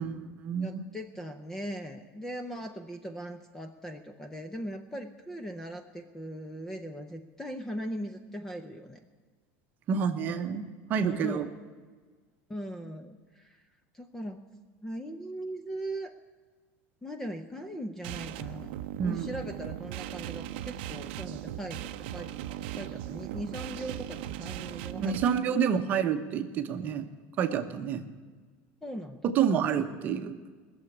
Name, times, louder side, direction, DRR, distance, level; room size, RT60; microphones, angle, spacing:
voice 1, 0.0-0.8 9.9-11.5 19.0-19.3 25.0-27.1 27.4-28.0 29.2-30.4, right 7 dB, 30° right, 8 dB, 0.9 m, -28 dB
voice 2, 0.6-9.0 11.0-11.5 12.5-13.6 13.9-14.4 14.8-16.1 17.0-18.7 19.0-22.3 22.8-25.2 25.5-25.6 28.8-29.2, equal, 5° left, 8 dB, 0.6 m, -39 dB
sound 1, 18.0-25.4, right 12 dB, 65° right, 0.6 m, -38 dB
19.5 x 7.0 x 9.7 m, 1.4 s
cardioid pair, 180°, 6 cm